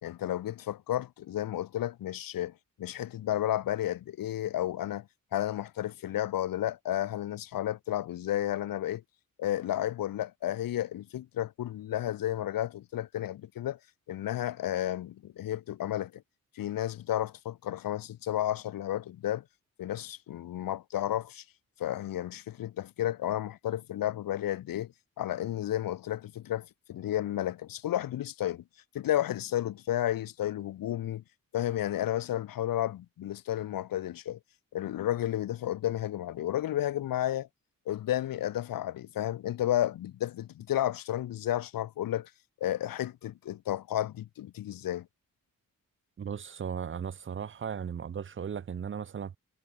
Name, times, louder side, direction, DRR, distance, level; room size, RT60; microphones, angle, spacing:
voice 1, 0.0-2.5 2.8-5.1 5.3-9.0 9.4-13.8 14.1-16.2 16.6-19.4 19.8-21.4 21.8-24.9 25.2-28.6 28.9-31.2 31.5-34.4 34.7-37.5 37.9-42.3 42.6-45.1, left 12 dB, 90° left, 1.0 m, -32 dB
voice 2, 46.2-49.4, right 7 dB, 35° right, 0.8 m, -36 dB
wide cardioid pair, 180°, 33 cm